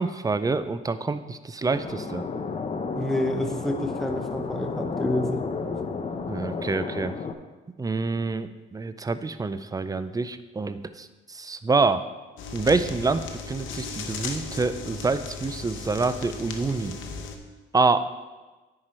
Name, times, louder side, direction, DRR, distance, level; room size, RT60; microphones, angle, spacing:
voice 1, 0.0-2.2 6.3-7.2 7.8-12.0 12.5-13.2 13.5-17.0 17.7-18.1, right 3 dB, 20° right, 12 dB, 0.4 m, -26 dB
sound 1, 1.7-7.3, left 4 dB, 35° left, 0.7 m, -32 dB
voice 2, 2.9-5.5, left 1 dB, ahead, 5 dB, 0.9 m, -28 dB
sound 2, 12.4-17.4, left 4 dB, 80° left, 0.9 m, -36 dB
9.9 x 4.9 x 4.3 m, 1.2 s
cardioid pair, 90°, 20 cm